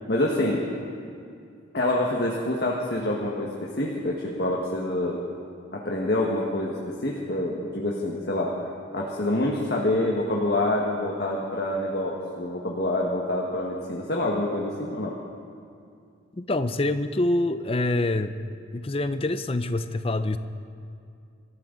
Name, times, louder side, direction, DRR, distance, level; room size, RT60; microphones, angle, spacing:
voice 1, 0.1-0.6 1.7-5.2 5.7-8.5 8.9-15.1, left 1 dB, 55° left, -3 dB, 1.5 m, -26 dB
voice 2, 16.3-18.3 18.7-20.4, left 2 dB, 30° left, 11 dB, 0.5 m, -25 dB
25.0 x 14.0 x 3.9 m, 2.4 s
head